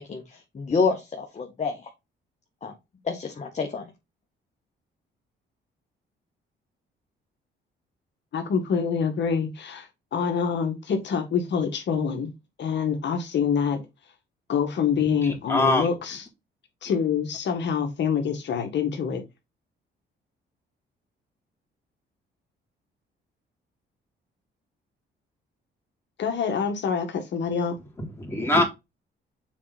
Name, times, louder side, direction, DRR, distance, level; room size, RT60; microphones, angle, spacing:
voice 1, 0.0-1.9 2.6-2.7 3.0-3.9, left 4 dB, 35° left, 1.8 m, -28 dB
voice 2, 8.3-12.3 12.6-13.8 14.5-16.2 16.8-19.2 26.2-27.8, left 6 dB, 65° left, 1.9 m, -26 dB
voice 3, 15.2-15.9 28.0-28.6, left 2 dB, 10° left, 3.7 m, -23 dB
7.3 x 4.6 x 4.2 m
cardioid pair, 90°, 20 cm